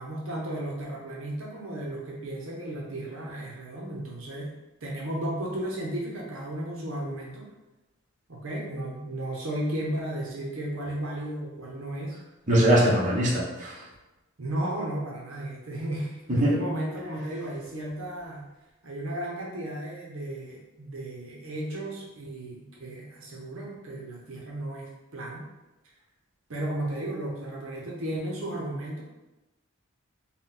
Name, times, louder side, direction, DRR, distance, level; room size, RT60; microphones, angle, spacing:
voice 1, 0.0-4.5 4.8-7.4 8.3-12.2 14.4-18.4 18.8-25.4 26.5-29.0, right 1 dB, 65° right, -3 dB, 0.7 m, -34 dB
voice 2, 12.5-13.8 16.3-16.5, right 1 dB, 35° right, -6 dB, 0.8 m, -22 dB
4.0 x 2.2 x 3.8 m, 1.0 s
head